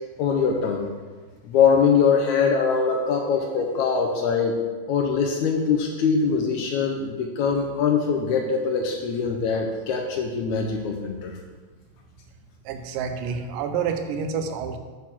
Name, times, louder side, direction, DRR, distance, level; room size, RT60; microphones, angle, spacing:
voice 1, 0.2-0.9 1.5-4.6 4.9-11.3, left 6 dB, 75° left, 2 dB, 1.9 m, -22 dB
voice 2, 12.7-14.8, right 6 dB, 85° right, 7 dB, 2.3 m, -28 dB
8.2 x 4.1 x 6.0 m, 1.4 s
omnidirectional pair, 3.8 m